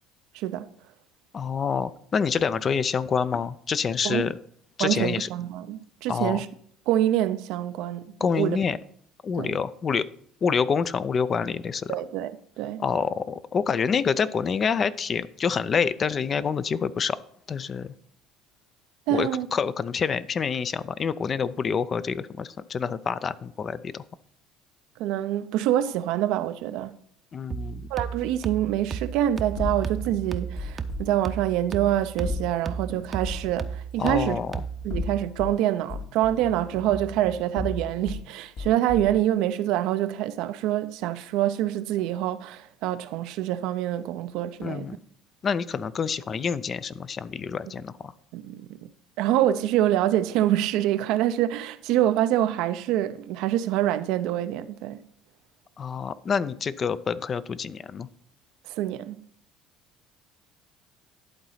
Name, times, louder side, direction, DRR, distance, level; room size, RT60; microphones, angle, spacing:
voice 1, 0.3-0.7 4.0-4.2 4.8-6.5 6.9-8.6 9.4-9.6 11.9-12.3 12.6-12.8 19.1-19.5 25.0-27.0 27.9-34.4 34.8-44.9 48.3-48.9 49.2-55.0 58.7-59.2, right 12 dB, 75° right, 0.5 m, -26 dB
voice 2, 1.3-4.4 4.8-5.3 6.1-6.4 8.2-8.8 9.2-10.1 10.4-11.9 12.8-17.2 17.5-17.9 19.1-24.0 27.3-27.8 34.0-34.6 44.6-45.0 45.4-48.1 55.8-58.1, left 6 dB, 40° left, 0.4 m, -27 dB
sound 1, 27.5-35.0, right 6 dB, 30° right, 0.6 m, -35 dB
sound 2, 29.6-31.1 32.2-33.5 34.7-35.6 35.9-38.2 38.6-39.2, left 3 dB, 60° left, 2.0 m, -34 dB
11.0 x 3.9 x 5.7 m
supercardioid pair, 90°, 0 cm